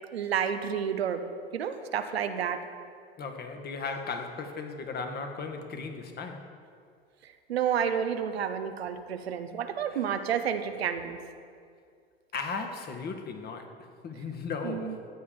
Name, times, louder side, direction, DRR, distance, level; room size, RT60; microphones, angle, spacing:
voice 1, 0.1-2.7 7.2-11.2 14.6-14.9, right 8 dB, 90° right, 9 dB, 0.8 m, -30 dB
voice 2, 3.2-6.5 12.3-13.7 14.0-15.0, left 4 dB, 35° left, 5 dB, 1.3 m, -36 dB
14.0 x 8.5 x 3.8 m, 2.2 s
hypercardioid pair, 85°, 30 cm